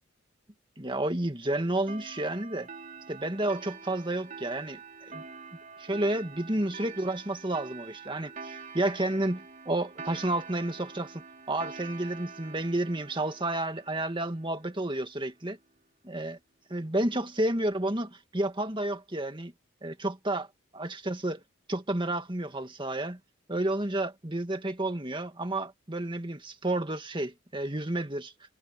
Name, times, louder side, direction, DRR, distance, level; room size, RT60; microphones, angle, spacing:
voice 1, 0.8-2.7 3.1-5.2 5.8-11.2 11.5-15.6 16.0-16.4 16.7-19.5 19.8-20.5 20.7-21.4 21.7-23.2 23.5-28.3, right 1 dB, 25° right, 2.0 m, -31 dB
sound 1, 1.9-15.0, right 5 dB, 40° right, 4.5 m, -46 dB
head